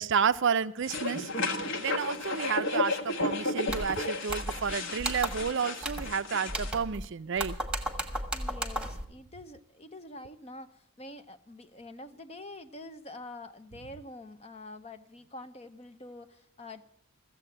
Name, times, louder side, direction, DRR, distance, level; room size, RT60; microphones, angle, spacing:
voice 1, 0.0-1.5 1.8-7.6, right 6 dB, 55° right, 0.5 m, -31 dB
sound 1, 0.8-6.7, left 2 dB, 55° left, 1.4 m, -33 dB
sound 2, 3.7-4.0 4.3-4.7 5.0-5.5 5.8-6.1 6.5-7.1 7.4-9.0, right 1 dB, 5° right, 1.3 m, -34 dB
voice 2, 8.3-16.8, left 2 dB, 30° left, 0.7 m, -46 dB
15.0 x 7.6 x 9.9 m
head